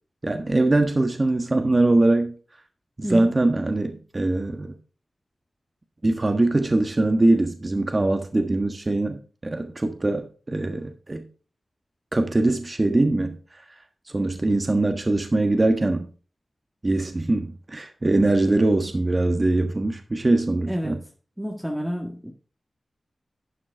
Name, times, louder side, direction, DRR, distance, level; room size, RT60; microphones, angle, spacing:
voice 1, 0.2-2.3 3.0-4.7 6.0-11.2 12.1-13.4 14.1-16.1 16.8-21.0, right 2 dB, 35° right, 1.4 m, -22 dB
voice 2, 3.0-3.3 20.7-21.0 21.4-22.3, equal, 5° right, 1.6 m, -29 dB
11.5 x 7.2 x 3.5 m
wide cardioid pair, 70°, 0 cm